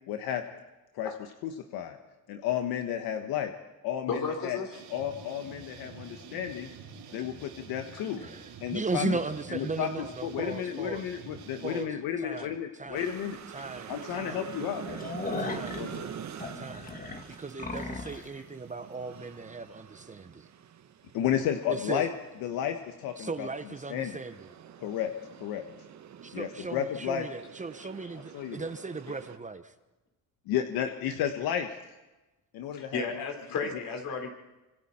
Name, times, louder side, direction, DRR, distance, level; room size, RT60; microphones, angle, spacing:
voice 1, 0.1-0.4 0.9-2.0 2.3-3.5 3.8-4.6 4.9-6.7 7.1-8.2 8.6-9.2 9.5-13.4 13.9-14.8 15.2-16.1 21.1-22.1 22.4-23.5 23.9-24.1 24.8-25.1 25.4-25.6 26.3-27.3 28.3-28.6 30.5-31.7 32.5-33.2, left 10 dB, 80° left, 6 dB, 1.3 m, -32 dB
voice 2, 4.1-4.8 32.7-34.3, left 5 dB, 65° left, 2 dB, 4.5 m, -33 dB
sound 1, 4.7-11.8, right 6 dB, 85° right, 3.9 m, -47 dB
voice 3, 8.2-11.1 11.6-13.1 13.5-14.5 15.4-15.8 16.5-16.9 17.3-20.5 21.7-22.1 23.2-24.5 26.2-29.7, right 4 dB, 20° right, 10 dB, 0.9 m, -37 dB
sound 2, 12.9-29.4, right 9 dB, 50° right, 1.3 m, -46 dB
sound 3, 13.0-13.1 13.6-13.7 14.0-14.1 14.5-18.3, left 3 dB, 25° left, 1.9 m, -38 dB
25.5 x 25.5 x 4.4 m, 1.1 s
cardioid pair, 105°, 36 cm